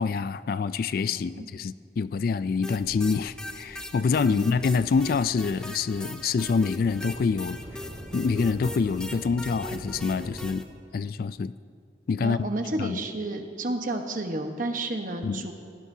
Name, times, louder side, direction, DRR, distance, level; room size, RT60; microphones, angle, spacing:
voice 1, 0.0-7.6 8.1-10.7 10.9-11.5 12.1-12.5 12.8-13.0 15.2-15.5, left 5 dB, 55° left, 15 dB, 0.3 m, -26 dB
voice 2, 1.1-1.5 4.3-4.5 12.2-15.5, right 2 dB, 50° right, 4 dB, 1.2 m, -31 dB
sound 1, 2.6-10.6, equal, 5° left, 0.6 m, -40 dB
sound 2, 2.7-10.4, equal, 20° right, 4.3 m, -44 dB
22.0 x 17.0 x 2.8 m, 2.3 s
head